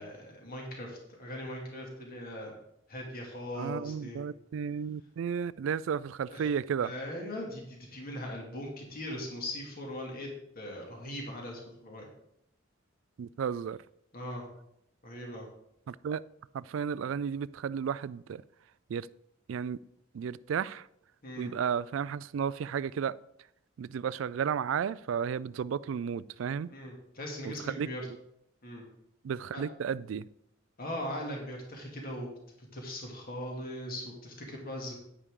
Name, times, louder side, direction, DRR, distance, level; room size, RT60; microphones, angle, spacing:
voice 1, 0.0-2.6 2.9-4.2 6.3-6.5 6.8-10.3 10.5-12.1 14.1-14.4 15.0-15.5 21.2-21.5 26.7-28.0 28.6-28.8 29.5-29.6 30.8-32.3 32.7-35.0, left 1 dB, 50° left, 2.5 m, -40 dB
voice 2, 3.5-6.9 13.2-13.8 15.9-16.2 16.5-18.4 18.9-19.1 19.5-19.8 20.1-20.9 21.4-23.2 23.8-26.7 27.5-28.2 29.2-30.3, right 7 dB, 70° right, 0.3 m, -33 dB
9.9 x 9.7 x 3.7 m
head